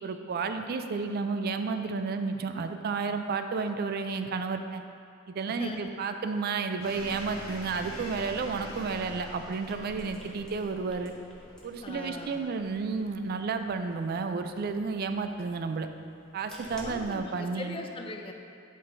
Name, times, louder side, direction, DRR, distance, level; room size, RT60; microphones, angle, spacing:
voice 1, 0.0-4.8 5.3-11.1 11.6-15.9 16.3-17.8, right 4 dB, 45° right, 8 dB, 0.3 m, -32 dB
voice 2, 5.5-5.8 11.8-12.5 16.8-18.3, left 2 dB, 25° left, 3 dB, 0.4 m, -40 dB
sound 1, 6.8-13.3, left 1 dB, 80° left, 1.4 m, -47 dB
sound 2, 6.9-17.2, equal, 5° left, 0.9 m, -50 dB
11.0 x 4.4 x 2.6 m, 2.5 s
head